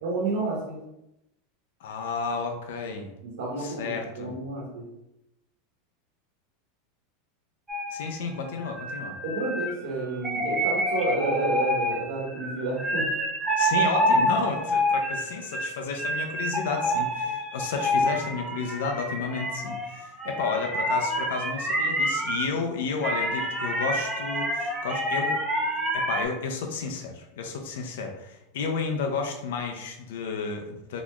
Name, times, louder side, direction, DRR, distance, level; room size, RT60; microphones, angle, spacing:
voice 1, 0.0-0.8 3.2-4.8 9.2-13.1, right 3 dB, 70° right, -5 dB, 1.1 m, -30 dB
voice 2, 1.8-3.1 3.6-4.3 7.9-9.2 13.6-25.4 25.9-31.0, left 5 dB, 80° left, 3 dB, 0.5 m, -32 dB
sound 1, 7.7-22.4 23.0-26.3, equal, 10° right, 0.5 m, -28 dB
3.9 x 2.9 x 2.3 m, 0.87 s
supercardioid pair, 170°, 0 cm